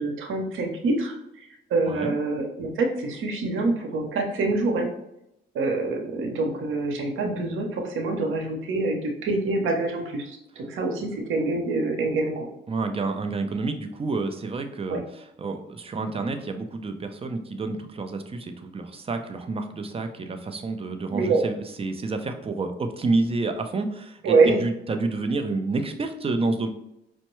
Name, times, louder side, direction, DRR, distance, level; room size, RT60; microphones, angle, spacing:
voice 1, 0.0-4.9 5.5-12.5 14.9-15.0 21.1-21.4 24.2-24.6, right 3 dB, 85° right, 2 dB, 0.9 m, -25 dB
voice 2, 1.9-2.2 12.7-26.7, right 3 dB, 30° right, 6 dB, 0.6 m, -29 dB
5.4 x 2.1 x 3.0 m, 0.82 s
cardioid pair, 90°, 20 cm